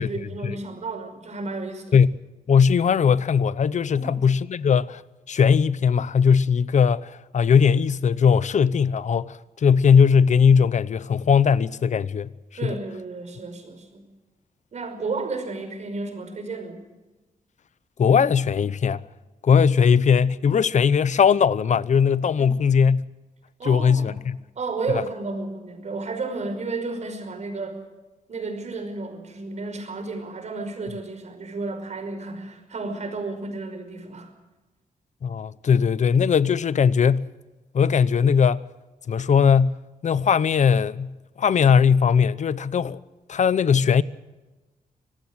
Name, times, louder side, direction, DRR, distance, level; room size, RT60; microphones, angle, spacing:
voice 1, 0.0-2.0 3.9-4.3 12.6-14.0 14.7-16.8 22.4-22.6 23.6-24.2 24.6-27.8 28.3-34.3, right 3 dB, 55° right, 5.3 m, -32 dB
voice 2, 2.5-5.0 5.3-12.3 12.6-12.7 18.0-19.0 19.4-23.1 23.6-24.4 24.9-25.0 35.2-37.3 37.7-38.6 39.1-43.0 43.3-44.0, left 6 dB, 55° left, 0.8 m, -19 dB
25.5 x 19.0 x 6.3 m
wide cardioid pair, 160°, 14 cm